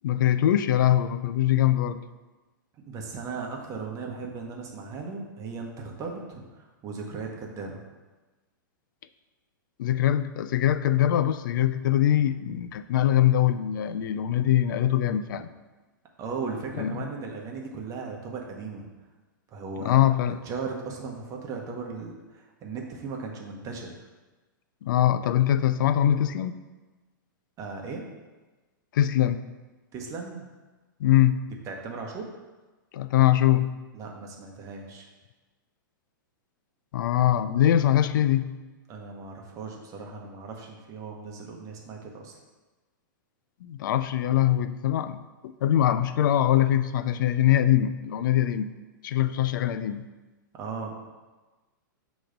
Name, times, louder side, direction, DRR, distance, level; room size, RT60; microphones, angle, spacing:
voice 1, 0.0-2.0 9.8-15.5 16.8-17.1 19.8-20.4 24.8-26.6 28.9-29.5 31.0-31.4 32.9-33.7 36.9-38.5 43.6-45.2 45.6-48.7 49.0-50.1, left 12 dB, 70° left, 12 dB, 0.4 m, -23 dB
voice 2, 2.9-7.8 15.3-15.5 16.2-18.9 19.5-20.0 20.4-23.9 27.6-28.0 29.9-30.4 31.7-32.3 33.9-35.1 38.9-42.4 50.6-51.0, right 4 dB, 30° right, 0 dB, 1.0 m, -37 dB
6.3 x 3.0 x 5.0 m, 1.2 s
hypercardioid pair, 130°, 11 cm